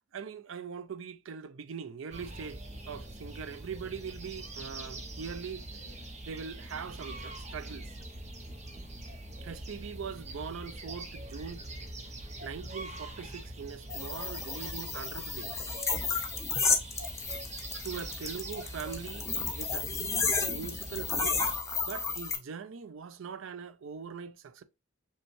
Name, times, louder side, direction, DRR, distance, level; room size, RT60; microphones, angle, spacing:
voice 1, 0.1-5.6 6.3-7.9 9.4-11.6 12.4-15.6 17.8-21.4 21.9-24.6, right 6 dB, 75° right, 0.4 m, -41 dB
sound 1, 2.1-21.6, right 1 dB, 35° right, 0.6 m, -44 dB
sound 2, 13.9-22.4, left 4 dB, 15° left, 0.4 m, -32 dB
5.2 x 2.3 x 3.0 m
head